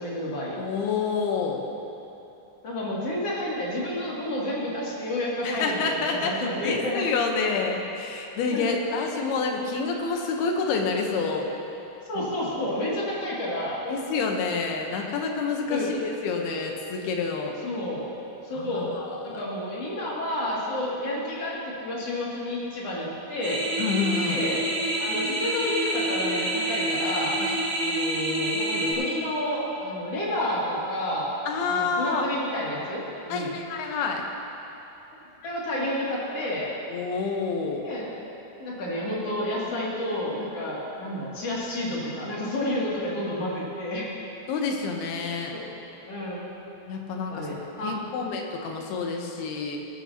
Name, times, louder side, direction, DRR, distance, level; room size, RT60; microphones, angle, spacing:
voice 1, 0.0-0.6 2.6-7.0 8.5-8.8 12.1-13.8 15.6-15.9 17.6-18.1 18.4-18.9 19.2-23.6 24.2-24.6 25.0-27.3 27.8-31.3 31.7-33.6 35.4-36.7 37.8-38.1 38.6-44.1 45.5-45.7 46.0-46.5 47.1-48.3, left 1 dB, 40° left, -6 dB, 3.4 m, -30 dB
voice 2, 0.6-1.6 5.4-6.3 6.6-11.5 12.2-12.3 13.8-17.6 18.6-19.4 23.8-24.4 27.4-27.5 31.5-32.2 33.3-34.2 36.9-37.9 42.7-42.8 44.5-45.5 46.9-47.5 47.8-49.8, left 4 dB, 80° left, 1 dB, 3.1 m, -28 dB
sound 1, 23.4-28.9, right 1 dB, 60° right, 4.7 m, -27 dB
17.5 x 14.0 x 2.9 m, 3.0 s
omnidirectional pair, 4.5 m